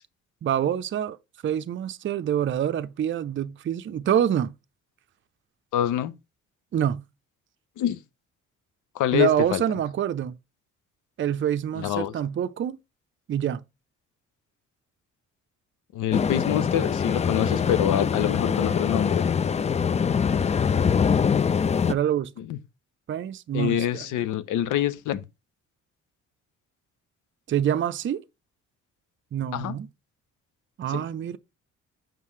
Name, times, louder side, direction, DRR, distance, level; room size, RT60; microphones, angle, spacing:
voice 1, 0.4-1.2 1.4-4.5 6.7-7.0 9.1-10.4 11.2-12.8 13.3-13.6 21.9-22.3 23.1-24.1 27.5-28.2 29.3-29.9 30.8-31.4, right 10 dB, 40° right, 0.5 m, -26 dB
voice 2, 5.7-6.1 7.8-8.0 8.9-9.6 11.7-12.1 15.9-19.3 22.4-22.6 23.5-25.2 29.5-29.8 30.9-31.0, left 11 dB, 85° left, 0.7 m, -26 dB
sound 1, 16.1-21.9, left 6 dB, 25° left, 0.4 m, -23 dB
7.3 x 5.5 x 3.2 m
cardioid pair, 90°, 30 cm